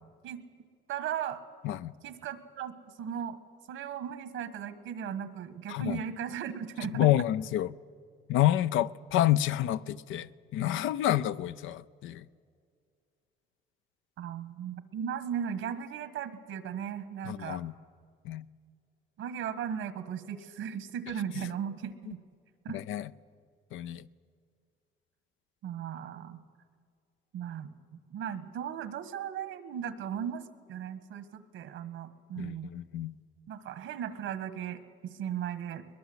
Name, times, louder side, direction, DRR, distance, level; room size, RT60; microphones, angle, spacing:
voice 1, 0.9-1.4 2.0-2.7 3.0-3.4 3.7-7.3 14.2-17.6 19.2-22.2 22.6-22.8 25.6-26.4 27.3-27.7 28.1-30.4 30.7-32.7 33.5-34.8 35.1-35.9, right 8 dB, 85° right, 1.6 m, -37 dB
voice 2, 5.7-6.0 6.9-7.7 8.3-12.2 17.3-17.7 18.2-18.4 22.7-23.0 23.7-24.1 32.4-33.2, left 13 dB, 90° left, 0.6 m, -28 dB
22.0 x 21.0 x 8.0 m
cardioid pair, 90°, 20 cm